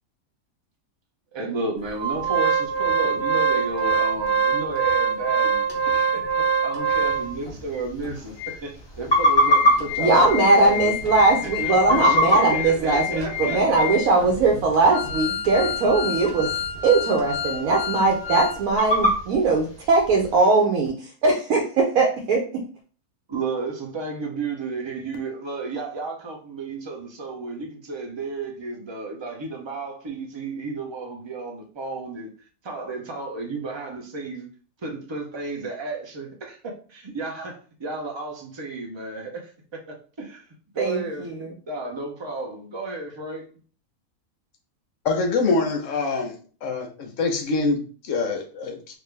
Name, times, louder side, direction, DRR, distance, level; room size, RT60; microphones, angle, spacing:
voice 1, 1.3-10.9 11.4-14.0 23.3-32.3 32.6-34.5 34.8-40.4 40.7-41.3 41.7-43.5, right 3 dB, 40° right, 0.4 m, -33 dB
Organ, 2.0-7.5 8.0-8.1 8.4-8.5 9.0-18.6 18.9-19.0, right 2 dB, 45° left, 1.1 m, -26 dB
sound 1, 6.9-20.4, equal, 25° left, 0.6 m, -27 dB
voice 2, 10.0-16.5 16.8-22.7 40.8-41.5, right 3 dB, 80° right, 1.1 m, -20 dB
voice 3, 45.0-46.3 46.6-49.0, left 3 dB, 65° left, 1.0 m, -25 dB
3.5 x 2.6 x 3.2 m
omnidirectional pair, 1.5 m